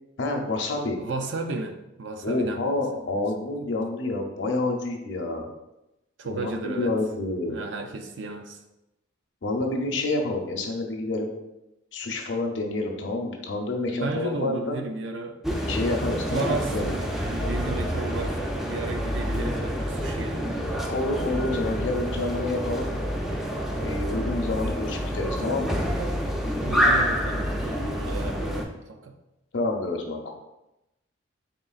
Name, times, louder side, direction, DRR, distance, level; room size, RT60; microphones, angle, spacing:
voice 1, 0.2-1.0 2.2-5.5 6.3-7.6 9.4-11.3 11.9-14.8 15.7-16.9 20.8-22.9 23.8-25.8 29.5-30.3, left 2 dB, 70° left, 2 dB, 0.6 m, -28 dB
voice 2, 1.0-2.8 3.0-3.2 3.5-3.6 6.2-6.9 7.5-8.6 14.0-15.4 16.3-20.5 26.6-29.1, right 3 dB, 70° right, 6 dB, 0.4 m, -34 dB
sound 1, 15.4-28.6, equal, ahead, 0.3 m, -28 dB
3.8 x 3.7 x 2.3 m, 0.91 s
head